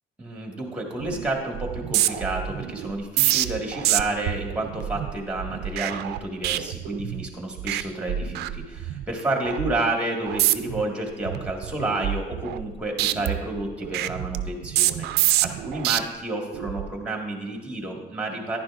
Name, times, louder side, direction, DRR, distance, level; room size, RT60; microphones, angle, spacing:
voice 1, 0.2-18.6, right 2 dB, 5° right, 1 dB, 1.7 m, -30 dB
sound 1, 1.0-1.3 1.5-7.3 7.6-7.8 8.1-9.0 9.4-9.7 10.3-10.8 11.2-12.7 13.0-16.0 16.5-16.9, right 14 dB, 75° right, 0.4 m, -26 dB
10.5 x 10.5 x 2.5 m, 1.2 s
cardioid pair, 110°, 17 cm